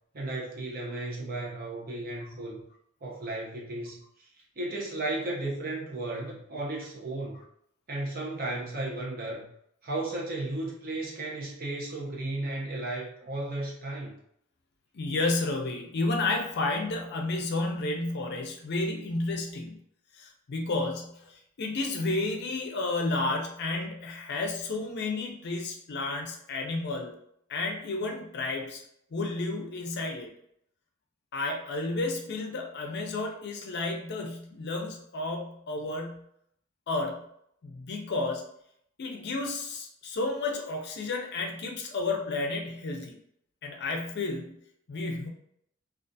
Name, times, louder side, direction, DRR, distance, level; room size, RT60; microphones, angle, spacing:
voice 1, 0.1-2.6 3.0-4.0 4.6-7.4 7.9-9.5 9.8-14.1, right 2 dB, 45° right, -3 dB, 0.7 m, -34 dB
voice 2, 14.9-19.8 20.1-27.1 27.5-28.8 29.1-30.3 31.3-36.2 36.9-37.2 37.6-38.4 39.0-43.1 43.6-44.6 44.9-45.3, left 2 dB, 50° left, 2 dB, 0.4 m, -31 dB
2.4 x 2.4 x 2.6 m, 0.72 s
head